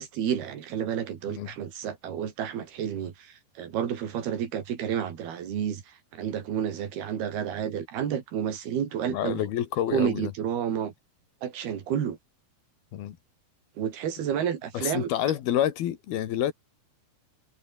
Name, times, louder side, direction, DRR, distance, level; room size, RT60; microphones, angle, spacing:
voice 1, 0.0-9.4 9.9-10.9 11.4-12.2 13.8-15.1, right 9 dB, 75° right, 4.6 m, -30 dB
voice 2, 9.1-10.3 12.9-13.2 14.7-16.5, left 11 dB, 75° left, 3.5 m, -28 dB
omnidirectional pair, 4.5 m